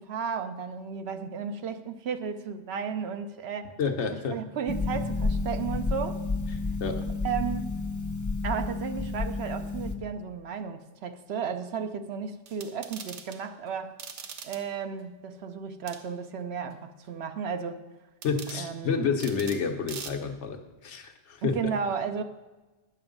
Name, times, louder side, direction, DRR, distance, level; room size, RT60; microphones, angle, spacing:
voice 1, 0.0-3.8 4.3-6.2 7.2-7.8 8.4-14.0 14.4-17.8 18.6-18.9 21.4-22.2, right 6 dB, 70° right, 8 dB, 0.9 m, -34 dB
voice 2, 3.8-4.4 6.8-7.1 18.2-21.6, left 5 dB, 80° left, 4 dB, 1.3 m, -29 dB
Harp, 4.7-9.9, left 3 dB, 20° left, 0.5 m, -30 dB
sound 1, 12.5-13.4 14.0-14.6 15.9-16.0 18.2-18.6 19.2-19.6 19.9-20.1, right 6 dB, 90° right, 1.1 m, -42 dB
9.8 x 6.9 x 5.2 m, 1.2 s
omnidirectional pair, 1.2 m